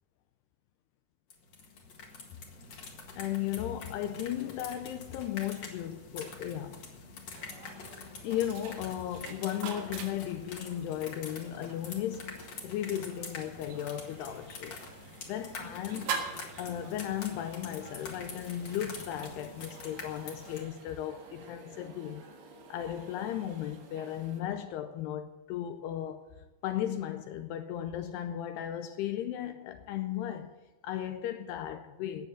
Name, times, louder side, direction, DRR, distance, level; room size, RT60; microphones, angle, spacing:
sound 1, 1.3-20.6, left 4 dB, 50° left, 2.6 m, -46 dB
voice 1, 3.2-6.8 8.0-14.8 15.3-16.2 16.6-22.3 22.7-26.2 26.6-30.5 30.8-32.3, left 11 dB, 85° left, 2.6 m, -36 dB
sound 2, 7.3-24.4, right 5 dB, 80° right, 3.9 m, -46 dB
18.0 x 7.0 x 7.3 m
omnidirectional pair, 4.9 m